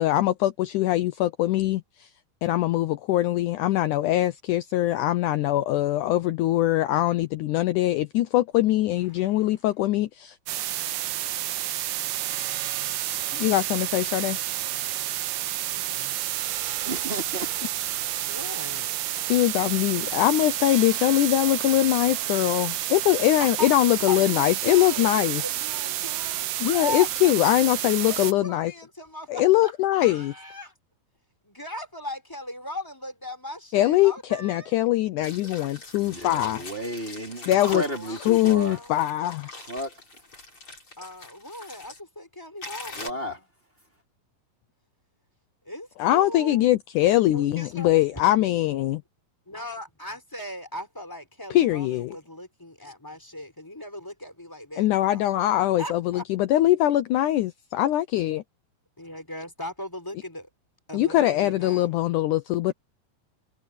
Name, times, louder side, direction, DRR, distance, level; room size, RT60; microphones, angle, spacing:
voice 1, 0.0-2.1 2.4-10.4 13.3-14.4 19.3-25.4 26.6-28.7 29.3-30.3 33.7-36.6 37.5-37.8 38.3-39.5 46.0-49.0 51.5-52.2 54.8-58.4 60.9-62.7, left 14 dB, 75° left, 2.0 m, -22 dB
sound 1, 10.5-28.3, right 13 dB, 75° right, 2.6 m, -30 dB
voice 2, 15.7-16.2 18.3-18.9 23.4-23.7 24.1-27.1 28.0-30.7 31.4-34.8 37.6-39.0 41.0-43.3 45.7-46.6 47.3-48.2 49.5-55.2 55.8-56.2 59.0-60.5 60.9-61.9, left 1 dB, 5° left, 3.9 m, -38 dB
voice 3, 16.8-17.6 36.0-38.8 39.6-40.0 42.9-43.4, right 1 dB, 15° right, 3.9 m, -33 dB
sound 2, 35.2-42.0 42.6-43.1, left 2 dB, 35° left, 6.9 m, -42 dB
omnidirectional pair, 4.1 m